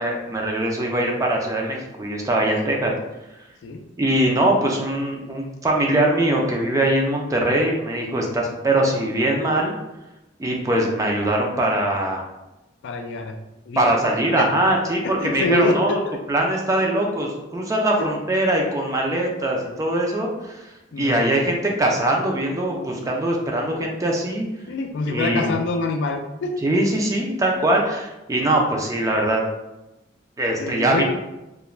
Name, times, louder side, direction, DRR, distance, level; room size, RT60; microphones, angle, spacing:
voice 1, 0.0-2.9 4.0-9.7 10.4-12.2 13.8-16.0 16.3-20.6 21.0-24.4 25.1-25.5 26.6-29.4 30.4-31.0, right 1 dB, 20° right, 0 dB, 0.4 m, -22 dB
voice 2, 12.8-13.4 13.7-13.9 14.3-14.5 14.9-16.2 18.0-18.1 20.9-21.4 24.7-26.5 30.6-31.0, left 2 dB, 65° left, 5 dB, 0.3 m, -26 dB
2.4 x 2.1 x 3.1 m, 0.97 s
head